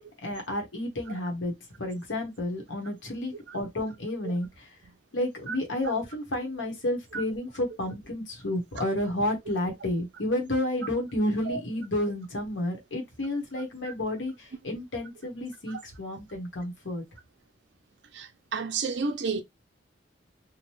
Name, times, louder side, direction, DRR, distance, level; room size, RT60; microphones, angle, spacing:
voice 1, 0.2-1.5 1.8-4.7 5.1-17.0, left 1 dB, 85° left, 1.0 m, -31 dB
voice 2, 18.1-19.4, right 4 dB, 70° right, 0.5 m, -30 dB
2.9 x 2.1 x 3.0 m
head